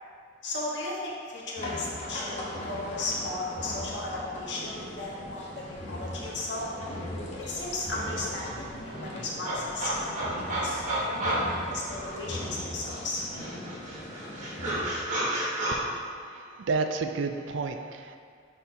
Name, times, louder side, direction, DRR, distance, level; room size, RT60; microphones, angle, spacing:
voice 1, 0.4-6.6 7.4-13.2, left 2 dB, 60° left, -4 dB, 1.2 m, -35 dB
sound 1, 1.6-14.9, left 1 dB, 35° left, 1.0 m, -39 dB
sound 2, 7.6-7.7 7.9-12.5 12.9-15.8, right 1 dB, 40° right, 1.4 m, -33 dB
voice 2, 16.3-18.2, right 4 dB, 70° right, 6 dB, 0.4 m, -31 dB
9.8 x 4.1 x 2.8 m, 2.1 s
head